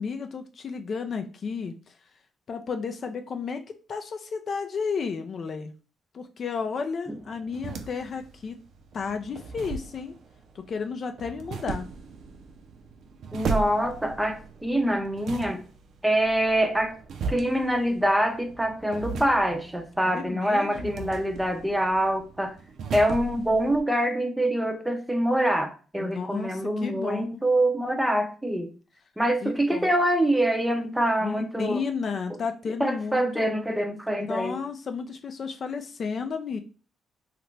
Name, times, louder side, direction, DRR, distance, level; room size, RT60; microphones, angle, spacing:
voice 1, 0.0-1.9 2.5-5.7 6.1-8.6 8.9-10.1 10.7-11.9 20.1-21.1 26.0-27.4 29.4-29.9 31.2-33.5 34.3-36.6, left 5 dB, 50° left, 6 dB, 0.4 m, -32 dB
sound 1, 7.1-23.8, right 5 dB, 65° right, 0.5 m, -38 dB
voice 2, 13.3-15.6 16.0-17.0 17.3-22.5 22.9-28.7 29.2-31.8 32.8-34.6, right 1 dB, 5° right, 6 dB, 0.6 m, -25 dB
3.0 x 2.4 x 3.2 m, 0.36 s
cardioid pair, 90°, 0 cm